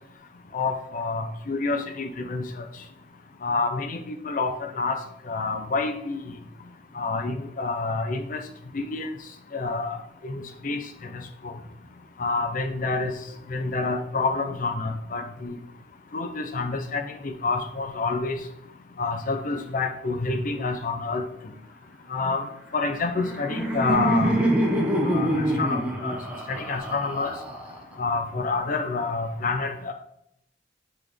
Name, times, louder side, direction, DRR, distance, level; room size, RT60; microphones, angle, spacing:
voice 1, 0.5-2.6 3.4-5.0 5.3-6.2 6.9-8.4 8.7-9.1 9.5-10.0 10.2-10.8 11.1-11.5 12.2-13.1 13.5-15.6 16.1-18.4 19.0-21.2 22.1-22.4 22.7-24.4 25.0-26.2 26.5-27.3 28.0-29.9, left 3 dB, 50° left, 4 dB, 0.6 m, -28 dB
Laughter, 22.9-27.9, right 1 dB, 5° right, 1.1 m, -26 dB
8.2 x 3.6 x 3.3 m, 0.76 s
head